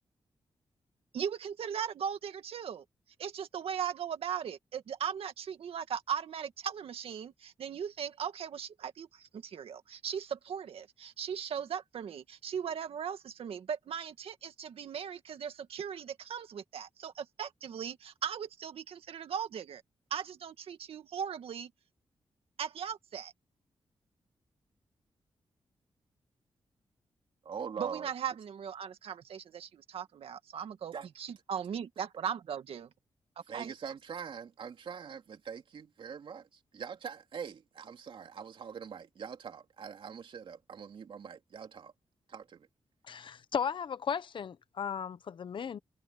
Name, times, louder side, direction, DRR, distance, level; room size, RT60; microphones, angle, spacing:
voice 1, 1.1-2.8 3.2-19.8 20.1-21.7 22.6-23.3 27.8-32.9 33.5-33.7, right 8 dB, 80° right, 1.9 m, -38 dB
voice 2, 27.4-28.1 30.9-31.1 33.5-36.5 36.7-41.9 42.3-42.7, right 6 dB, 65° right, 3.1 m, -43 dB
voice 3, 43.0-45.8, left 7 dB, 60° left, 0.9 m, -35 dB
wide cardioid pair, 125°, 10 cm